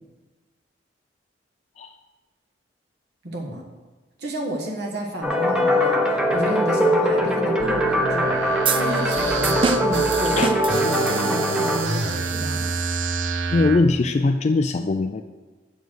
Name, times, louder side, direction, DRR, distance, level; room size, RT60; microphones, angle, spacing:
voice 1, 3.2-3.6 4.2-12.7, right 1 dB, 60° right, 0 dB, 1.5 m, -31 dB
sound 1, 5.2-11.8, equal, 5° right, 0.9 m, -22 dB
sound 2, 7.6-13.8, right 4 dB, 85° right, 0.8 m, -28 dB
sound 3, 8.6-11.7, right 6 dB, 30° right, 0.4 m, -28 dB
voice 2, 13.5-15.2, left 3 dB, 35° left, 5 dB, 0.3 m, -21 dB
7.7 x 7.2 x 6.3 m, 1.3 s
head